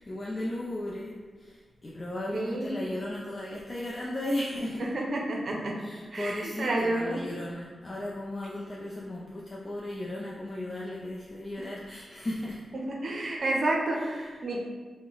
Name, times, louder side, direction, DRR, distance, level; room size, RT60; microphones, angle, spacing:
voice 1, 0.0-4.8 5.8-12.6 14.0-14.3, left 1 dB, 35° left, -5 dB, 0.4 m, -36 dB
voice 2, 2.3-2.8 4.8-7.2 11.6-11.7 12.9-14.6, right 1 dB, 65° right, 0 dB, 0.6 m, -30 dB
2.9 x 2.1 x 3.8 m, 1.4 s
cardioid pair, 60°, 0 cm